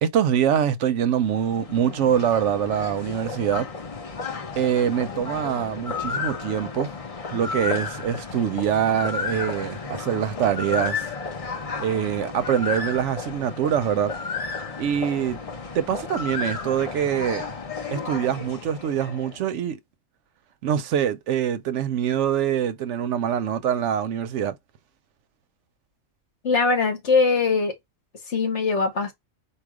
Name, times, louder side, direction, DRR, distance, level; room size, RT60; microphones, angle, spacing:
voice 1, 0.0-3.7 4.6-6.9 7.3-11.1 11.8-14.1 14.8-15.4 15.7-17.4 17.9-19.8 20.6-24.5, right 9 dB, 70° right, 0.9 m, -24 dB
sound 1, 1.0-19.4, left 4 dB, 35° left, 0.7 m, -33 dB
voice 2, 26.4-27.7 28.3-29.1, left 4 dB, 65° left, 1.5 m, -21 dB
4.7 x 2.3 x 4.8 m
omnidirectional pair, 1.3 m